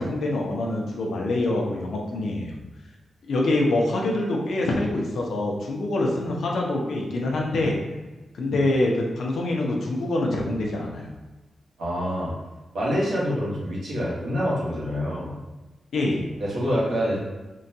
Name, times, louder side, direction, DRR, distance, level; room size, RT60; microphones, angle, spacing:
voice 1, 0.0-2.5 3.3-7.8 8.4-11.1 15.9-16.2, left 2 dB, 80° left, -1 dB, 0.5 m, -25 dB
voice 2, 11.8-12.3 12.7-15.3 16.4-17.2, equal, 80° right, -7 dB, 1.1 m, -26 dB
3.7 x 2.2 x 2.6 m, 1.2 s
wide cardioid pair, 130°, 0 cm